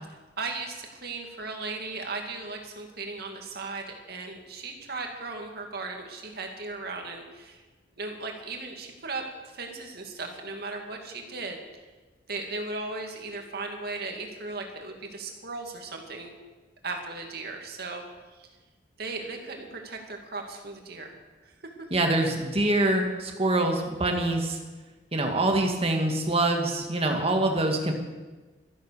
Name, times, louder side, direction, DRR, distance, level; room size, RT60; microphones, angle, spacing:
voice 1, 0.4-7.6 8.0-9.2 9.5-11.6 12.3-16.3 16.8-18.0 18.4-18.5 19.0-21.1 21.8-21.9, right 3 dB, 60° right, 3 dB, 2.3 m, -37 dB
voice 2, 21.9-24.6 25.1-27.9, right 2 dB, 35° right, 3 dB, 2.0 m, -25 dB
13.0 x 12.0 x 6.9 m, 1.3 s
head